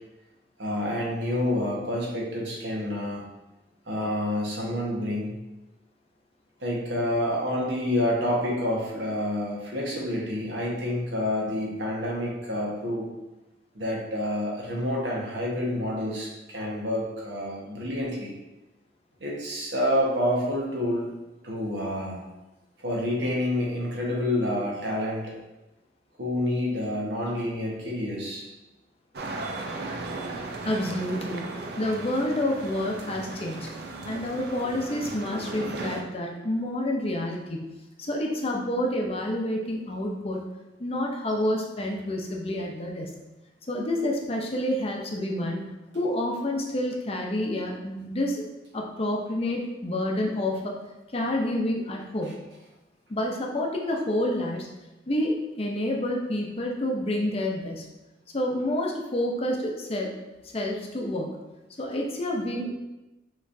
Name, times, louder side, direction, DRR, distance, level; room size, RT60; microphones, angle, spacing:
voice 1, 0.6-3.2 3.9-5.3 6.6-13.1 13.7-18.3 19.2-21.1 21.4-22.2 22.8-25.3 26.2-28.4, left 1 dB, 85° right, -3 dB, 1.2 m, -28 dB
sound 1, 29.1-36.0, right 2 dB, 60° right, 0.5 m, -36 dB
voice 2, 30.6-33.7 34.0-37.7 38.0-40.4 40.8-43.1 43.7-48.4 48.7-50.7 51.1-52.4 53.1-54.7 55.1-57.9 58.3-60.1 60.5-61.4 61.8-62.7, left 1 dB, 35° left, 0 dB, 0.6 m, -28 dB
6.0 x 3.1 x 2.6 m, 1.0 s
head